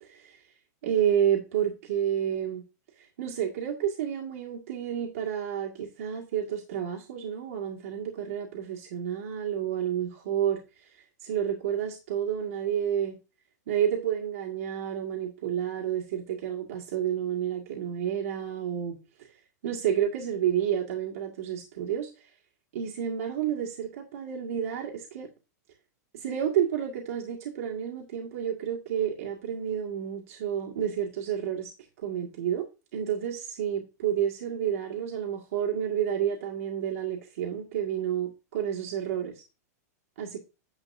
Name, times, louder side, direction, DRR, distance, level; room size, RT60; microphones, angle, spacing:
voice 1, 0.0-0.4 0.8-2.6 3.0-11.0 11.2-13.2 13.7-19.3 19.6-22.1 22.7-25.3 26.1-31.7 32.0-32.6 32.9-39.4 40.2-40.4, right 9 dB, 55° right, -1 dB, 1.8 m, -30 dB
9.8 x 7.3 x 2.6 m, 0.29 s
supercardioid pair, 180°, 9 cm